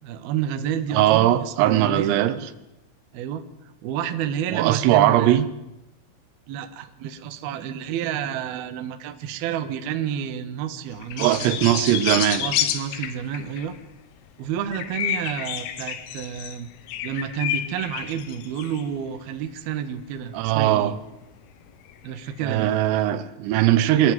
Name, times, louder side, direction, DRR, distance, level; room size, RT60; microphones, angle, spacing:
voice 1, 0.0-2.2 3.1-3.4 3.8-5.4 6.5-11.5 12.4-13.8 14.4-16.7 17.0-21.0 22.0-22.7, right 8 dB, 65° right, 2.6 m, -30 dB
voice 2, 0.9-2.4 4.5-5.5 11.2-12.5 20.3-20.9 22.4-24.1, right 13 dB, 85° right, 3.8 m, -20 dB
sound 1, 11.0-13.8 14.7-18.9 20.6-20.7 21.5-22.4, left 11 dB, 85° left, 4.1 m, -30 dB
24.0 x 16.0 x 9.4 m
omnidirectional pair, 5.9 m